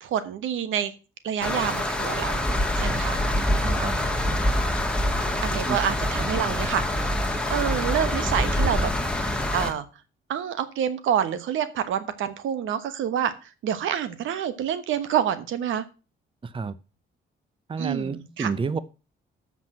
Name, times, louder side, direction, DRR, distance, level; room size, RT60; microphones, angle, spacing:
voice 1, 0.0-0.9 1.2-2.5 2.8-3.2 3.6-3.9 5.4-6.8 7.5-8.9 9.5-9.8 10.3-13.3 13.6-15.8 17.8-18.5, right 9 dB, 80° right, 13 dB, 1.2 m, -27 dB
sound 1, 1.4-9.7, left 1 dB, 5° left, 1.8 m, -25 dB
voice 2, 3.6-4.0 5.7-5.8 16.4-16.8 17.7-18.8, right 5 dB, 25° right, 15 dB, 0.7 m, -29 dB
7.4 x 6.0 x 7.5 m, 0.32 s
cardioid pair, 90°, 20 cm